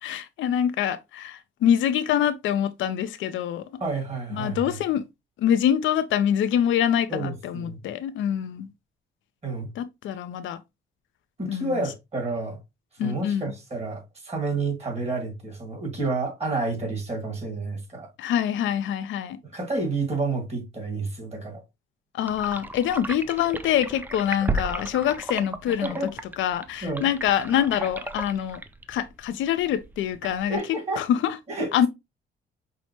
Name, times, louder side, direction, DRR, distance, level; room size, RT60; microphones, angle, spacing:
voice 1, 0.0-3.7 4.3-5.0 5.4-8.7 9.8-10.6 11.5-11.8 13.0-13.5 18.2-19.4 22.1-26.0 26.4-28.6 28.9-31.4 31.7-31.9, left 10 dB, 75° left, 0.5 m, -25 dB
voice 2, 3.8-4.8 7.1-7.8 9.4-9.7 11.4-12.6 13.0-18.1 19.5-21.6 25.8-26.1 26.8-27.1 30.2-31.0 31.5-31.7, right 3 dB, 30° right, 2.0 m, -30 dB
sound 1, 22.3-30.6, right 2 dB, 10° right, 0.4 m, -34 dB
5.6 x 2.0 x 2.9 m
cardioid pair, 90°, 20 cm